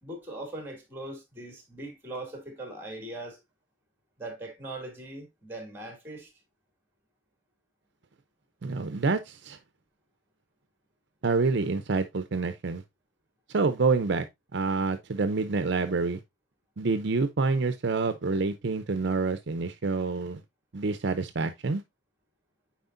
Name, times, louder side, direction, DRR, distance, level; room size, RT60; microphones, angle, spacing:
voice 1, 0.0-3.4 4.2-6.3, right 2 dB, 10° right, 2.4 m, -40 dB
voice 2, 8.6-9.6 11.2-12.8 13.5-14.3 14.5-16.2 16.8-20.4 20.7-21.8, right 4 dB, 60° right, 0.6 m, -27 dB
9.3 x 4.3 x 2.5 m
head